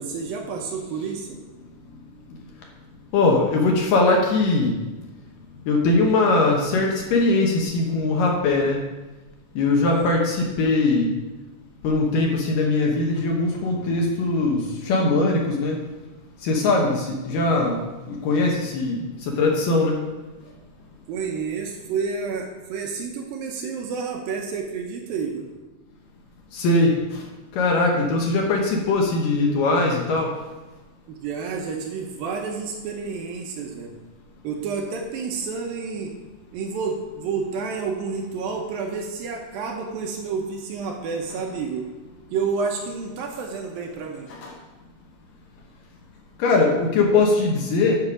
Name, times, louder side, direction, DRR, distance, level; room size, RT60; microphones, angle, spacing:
voice 1, 0.0-1.4 9.9-10.1 17.3-17.7 21.1-25.5 31.1-34.0 34.4-36.1 36.5-41.9 42.3-44.3, right 5 dB, 75° right, 2 dB, 2.4 m, -30 dB
voice 2, 3.1-4.7 5.7-8.8 9.6-11.1 11.8-15.8 16.4-20.0 26.5-27.0 27.6-30.3 44.4-44.5 46.4-48.0, left 3 dB, 70° left, 0 dB, 2.5 m, -21 dB
9.8 x 6.8 x 5.0 m, 1.1 s
omnidirectional pair, 4.7 m